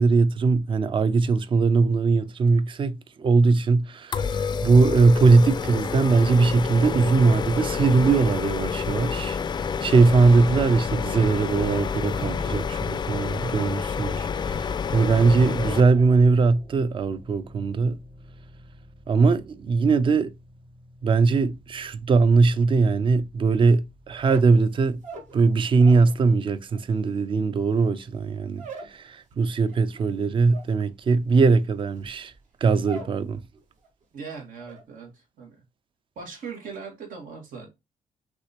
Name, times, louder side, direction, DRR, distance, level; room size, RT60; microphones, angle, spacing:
voice 1, 0.0-18.0 19.1-20.3 21.0-25.0 25.3-32.3 32.6-33.4, right 4 dB, 40° right, 0.4 m, -21 dB
sound 1, 4.1-15.8, left 6 dB, 35° left, 0.3 m, -29 dB
voice 2, 12.2-12.5 34.1-35.6 36.2-37.7, right 5 dB, 90° right, 1.9 m, -39 dB
sound 2, 15.6-25.8, right 1 dB, 20° right, 0.9 m, -49 dB
sound 3, 24.1-26.2 26.4-33.2 33.5-34.0 34.3-34.8, right 3 dB, 65° right, 1.3 m, -43 dB
6.1 x 2.9 x 2.9 m
wide cardioid pair, 145°, 14 cm